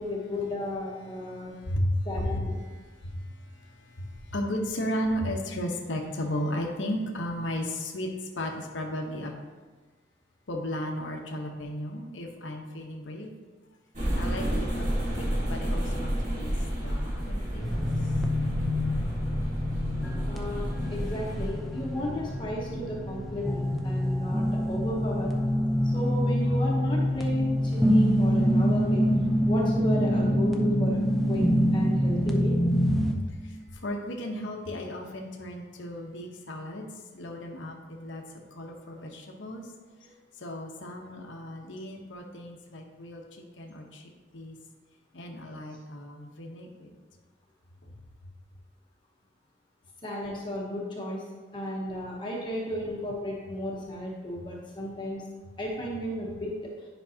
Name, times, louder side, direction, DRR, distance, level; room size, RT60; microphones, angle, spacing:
voice 1, 0.0-1.5 2.0-2.6 20.3-25.3 25.8-29.1 29.4-31.0 31.3-32.6 40.0-40.1 50.0-51.3 51.5-55.2 55.6-56.6, left 1 dB, 25° left, -3 dB, 1.0 m, -34 dB
voice 2, 1.3-2.3 2.6-8.1 8.3-9.3 10.5-13.3 14.1-17.8 19.3-19.4 33.1-36.9 37.1-38.2 38.5-39.7 40.4-43.2 43.6-44.0 44.3-44.6 45.1-46.9, equal, 80° left, 1 dB, 1.0 m, -35 dB
sound 1, 13.9-21.5, equal, 40° right, 2.2 m, -31 dB
sound 2, 17.6-33.1, equal, ahead, 0.6 m, -26 dB
10.0 x 5.3 x 2.8 m, 1.3 s
head